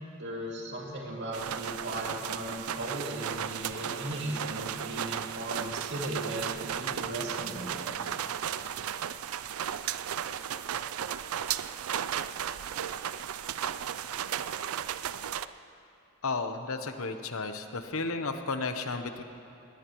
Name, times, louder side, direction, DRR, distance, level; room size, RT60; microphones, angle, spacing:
voice 1, 0.2-7.8, right 1 dB, 55° right, -2 dB, 2.6 m, -37 dB
sound 1, 1.3-15.5, right 9 dB, 90° right, 0.4 m, -35 dB
voice 2, 16.2-19.2, left 3 dB, 80° left, 7 dB, 1.0 m, -33 dB
21.0 x 18.0 x 3.1 m, 3.0 s
head